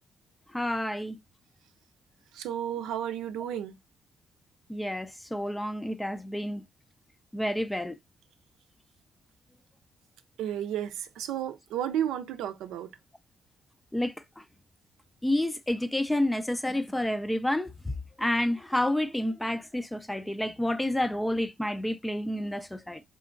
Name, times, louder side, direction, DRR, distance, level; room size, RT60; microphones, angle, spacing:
voice 1, 0.5-1.2 4.7-6.6 7.3-8.0 13.9-14.4 15.2-23.0, left 1 dB, 10° left, 0.4 m, -29 dB
voice 2, 2.3-3.8 10.4-12.9, right 10 dB, 90° right, 0.5 m, -32 dB
3.8 x 3.4 x 2.4 m
cardioid pair, 90°, 0 cm